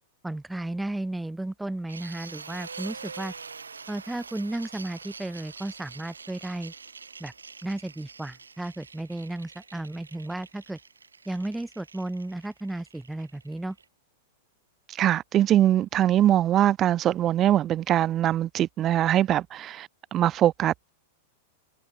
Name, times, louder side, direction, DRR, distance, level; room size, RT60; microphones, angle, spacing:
voice 1, 0.2-3.3 3.9-6.7 7.2-7.3 7.6-10.8 11.3-13.8, right 1 dB, 5° right, 6.2 m, -34 dB
sound 1, 1.9-13.8, right 5 dB, 80° right, 6.2 m, -45 dB
voice 2, 15.0-20.9, right 12 dB, 30° right, 0.8 m, -22 dB
figure-of-eight pair, 95°, 0 cm